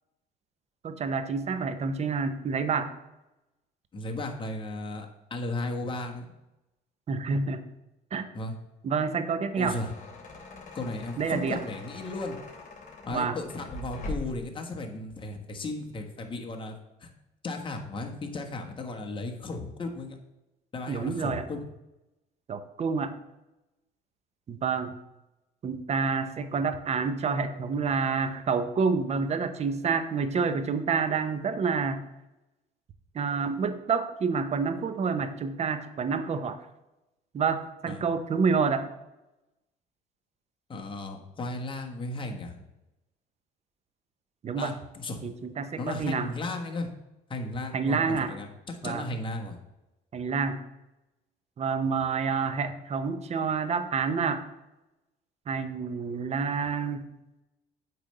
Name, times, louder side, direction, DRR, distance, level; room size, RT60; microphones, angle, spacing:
voice 1, 0.8-2.9 7.1-7.6 8.1-8.3 8.8-9.8 11.2-11.6 13.1-13.4 20.9-21.4 22.5-23.1 24.5-25.0 25.6-32.0 33.1-36.6 37.3-38.9 44.4-44.7 45.2-46.3 47.7-48.4 48.8-49.0 50.1-50.6 51.6-54.4 55.5-57.1, right 5 dB, 40° right, 10 dB, 0.8 m, -28 dB
voice 2, 3.9-6.3 8.3-8.5 9.6-9.9 10.7-12.4 13.0-16.7 17.0-17.1 17.4-20.2 20.7-21.6 37.8-38.0 40.7-42.5 44.6-45.2 45.8-46.9 47.3-49.6, left 2 dB, 30° left, 2 dB, 1.3 m, -35 dB
sound 1, 9.4-14.5, left 2 dB, 50° left, 2.7 m, -42 dB
8.6 x 3.4 x 6.6 m, 0.94 s
cardioid pair, 110°, 17 cm